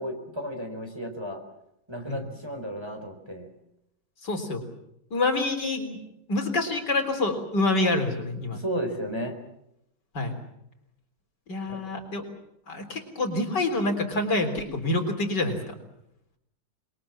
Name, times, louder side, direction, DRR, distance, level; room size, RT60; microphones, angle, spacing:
voice 1, 0.0-1.4 1.9-3.5 8.5-9.4 11.7-11.8, equal, 15° right, 4 dB, 4.2 m, -33 dB
voice 2, 4.2-4.6 5.1-6.0 6.3-8.6 10.1-10.4 11.5-12.2 12.7-15.7, left 2 dB, 65° left, 5 dB, 4.3 m, -27 dB
26.5 x 22.5 x 7.3 m, 0.79 s
omnidirectional pair, 2.0 m